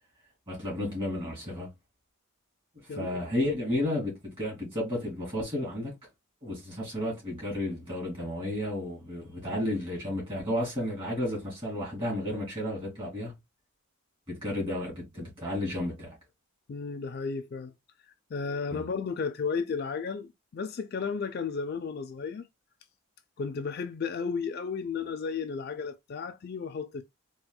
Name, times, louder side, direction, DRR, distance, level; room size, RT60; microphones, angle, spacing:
voice 1, 0.5-1.7 2.9-5.9 6.4-13.3 14.3-16.2 18.7-18.9, left 1 dB, 25° right, 2.2 m, -32 dB
voice 2, 16.7-17.7 18.3-22.4 23.4-27.0, left 5 dB, 45° left, 0.3 m, -33 dB
4.2 x 2.3 x 2.3 m
head